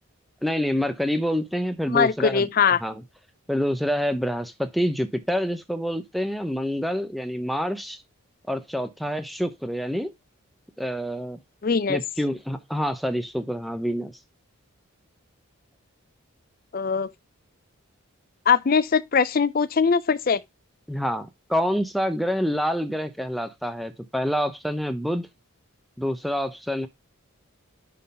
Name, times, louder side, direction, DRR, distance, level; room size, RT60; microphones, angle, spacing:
voice 1, 0.4-2.5 2.8-2.9 3.5-8.0 8.5-10.1 10.8-11.4 11.9-14.1 20.9-25.3 26.0-26.9, equal, ahead, 0.6 m, -27 dB
voice 2, 1.9-2.8 11.6-12.0 16.7-17.1 18.5-20.4, left 6 dB, 40° left, 0.4 m, -21 dB
6.3 x 3.7 x 5.3 m
head